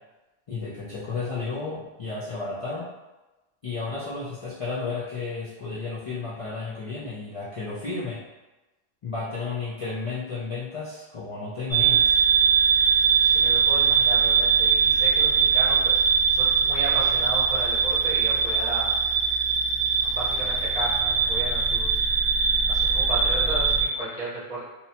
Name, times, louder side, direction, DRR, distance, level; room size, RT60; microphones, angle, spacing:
voice 1, 0.5-2.9 3.6-8.2 9.0-12.2, left 4 dB, 55° left, -6 dB, 0.3 m, -32 dB
sound 1, 11.7-23.8, right 6 dB, 20° left, 0.9 m, -21 dB
voice 2, 13.2-19.0 19.3-19.4 20.0-24.6, right 2 dB, 40° right, -8 dB, 1.0 m, -35 dB
2.8 x 2.1 x 2.8 m, 1.1 s
omnidirectional pair, 1.1 m